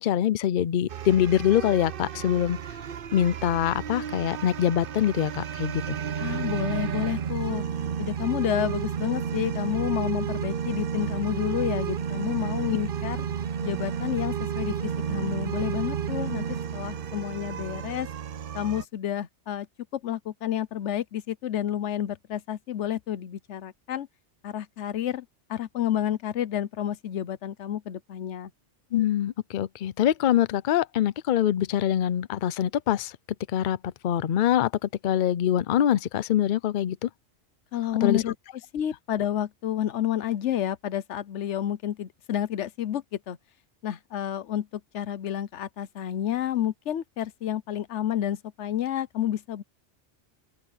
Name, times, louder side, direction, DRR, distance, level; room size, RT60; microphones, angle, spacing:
voice 1, 0.0-2.6 3.1-6.0 28.9-33.1 33.5-37.1 38.0-38.2, left 11 dB, 55° left, 0.6 m, -24 dB
sound 1, 0.9-18.8, right 8 dB, 55° right, 0.8 m, -32 dB
voice 2, 6.2-7.6 8.0-13.2 13.6-18.1 18.5-19.7 19.9-24.1 24.4-28.5 37.7-38.3 38.7-43.4 43.8-49.6, left 11 dB, 90° left, 1.1 m, -30 dB
open air
omnidirectional pair, 1.2 m